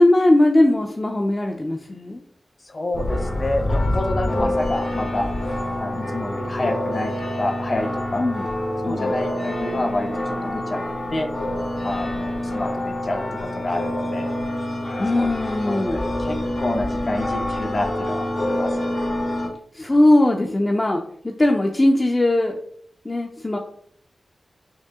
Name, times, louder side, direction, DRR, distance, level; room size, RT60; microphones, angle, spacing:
voice 1, 0.0-2.2 4.3-4.5 8.2-8.4 8.8-9.1 15.0-16.0 19.7-22.6 23.0-23.6, left 1 dB, 25° left, 1 dB, 0.5 m, -19 dB
voice 2, 2.6-5.3 5.8-8.2 8.8-10.8 11.1-11.3 11.8-14.3 15.2-15.3 15.6-18.7, left 2 dB, 45° left, 4 dB, 0.9 m, -28 dB
sound 1, 2.9-19.5, left 1 dB, 80° left, 1.7 m, -26 dB
5.5 x 2.7 x 3.6 m, 0.62 s
wide cardioid pair, 100°, 0 cm